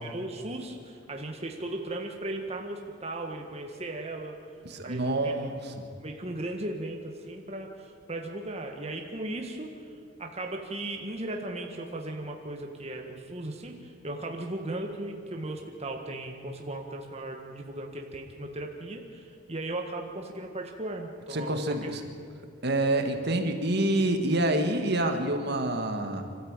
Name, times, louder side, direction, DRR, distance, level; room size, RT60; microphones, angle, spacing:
voice 1, 0.0-4.4 4.8-5.3 6.0-9.7 10.2-21.9, right 1 dB, 30° right, 2 dB, 1.6 m, -37 dB
voice 2, 4.7-5.7 21.3-22.0 22.6-26.2, right 1 dB, 55° right, 6 dB, 1.8 m, -27 dB
26.0 x 13.5 x 9.0 m, 2.3 s
head